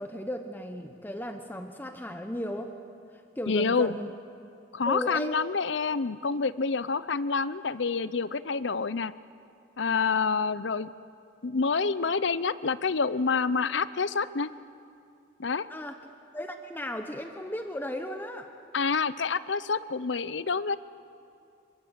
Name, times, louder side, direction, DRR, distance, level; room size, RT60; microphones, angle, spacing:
voice 1, 0.0-2.7 3.4-4.1 4.9-5.4 15.7-16.0 16.3-18.5, left 1 dB, 10° left, 6 dB, 1.0 m, -35 dB
voice 2, 3.5-4.0 4.7-9.1 9.8-10.9 11.4-14.5 15.4-15.7 18.7-20.8, left 4 dB, 75° left, 15 dB, 0.7 m, -27 dB
25.0 x 23.5 x 8.2 m, 2.6 s
head